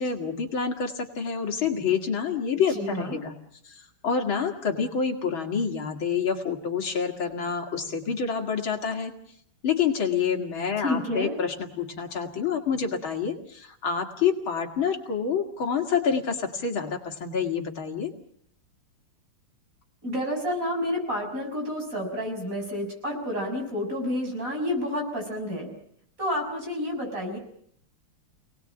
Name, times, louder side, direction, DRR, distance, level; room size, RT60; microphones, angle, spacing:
voice 1, 0.0-3.4 3.6-9.1 9.6-18.1, left 6 dB, 65° left, 3 dB, 3.0 m, -27 dB
voice 2, 2.7-3.2 10.8-11.4 20.0-25.7 26.2-27.4, left 1 dB, 35° right, 2 dB, 6.9 m, -29 dB
28.0 x 19.0 x 8.8 m, 0.69 s
omnidirectional pair, 2.4 m